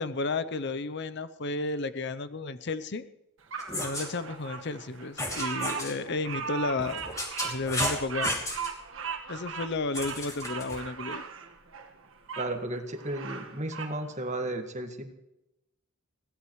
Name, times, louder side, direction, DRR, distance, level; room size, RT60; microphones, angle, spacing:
voice 1, 0.0-3.1 3.8-7.0 7.4-8.3 9.3-11.3, left 3 dB, 50° left, 13 dB, 0.7 m, -32 dB
Bird vocalization bird call bird song, 3.5-12.5 12.9-14.0, right 6 dB, 60° right, 1.7 m, -37 dB
sound 1, 3.6-4.1 5.2-5.9 6.8-8.7 9.9-10.8, left 1 dB, 15° left, 2.8 m, -33 dB
voice 2, 12.4-15.1, right 1 dB, 30° right, 5 dB, 1.8 m, -34 dB
22.5 x 17.0 x 3.2 m, 0.91 s
head